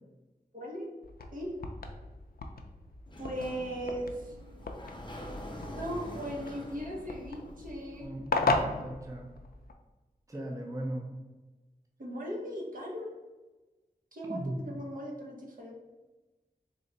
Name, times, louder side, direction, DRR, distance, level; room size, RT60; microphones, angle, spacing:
voice 1, 0.5-0.9 1.3-1.5 3.2-4.3 5.8-8.1 12.0-13.1 14.1-15.7, equal, 60° right, -2 dB, 0.9 m, -38 dB
sound 1, 1.0-9.7, left 3 dB, 70° left, 0.4 m, -36 dB
Sliding door, 3.1-8.1, equal, 30° left, 0.7 m, -45 dB
voice 2, 8.0-9.3 10.3-11.1 14.3-14.6, right 1 dB, 20° right, -1 dB, 0.6 m, -38 dB
3.8 x 2.1 x 3.9 m, 1.2 s
wide cardioid pair, 45°, 16 cm